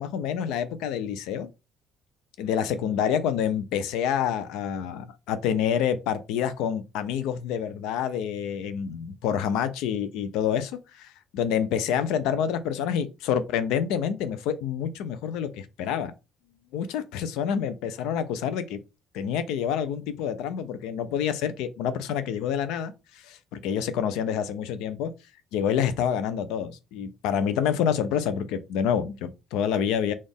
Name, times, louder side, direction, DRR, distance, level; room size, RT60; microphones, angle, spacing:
voice 1, 0.0-1.5 2.4-16.1 16.7-18.8 19.1-22.9 23.2-25.1 25.5-30.1, left 8 dB, 90° left, 0.5 m, -27 dB
4.2 x 2.4 x 3.4 m
cardioid pair, 115°, 0 cm